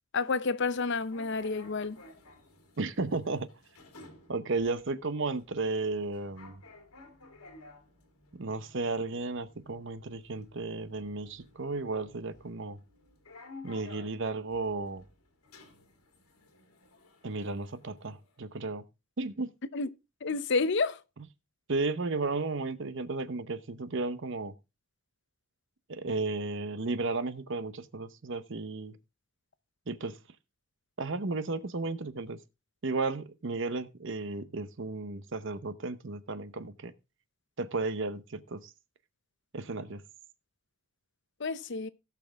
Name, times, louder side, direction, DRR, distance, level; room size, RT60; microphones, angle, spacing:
voice 1, 0.1-2.0 19.7-19.9 20.2-21.0 41.4-41.9, left 4 dB, 55° left, 0.6 m, -30 dB
sound 1, 0.9-18.4, left 2 dB, 80° left, 2.2 m, -55 dB
voice 2, 2.8-3.5 4.3-6.6 8.3-12.8 13.6-15.0 17.2-18.8 19.2-19.5 21.7-24.5 25.9-29.0 29.9-30.2 31.0-32.4 32.8-36.9 37.6-38.7 39.5-40.0, right 3 dB, 55° right, 0.8 m, -34 dB
17.5 x 5.9 x 3.4 m
head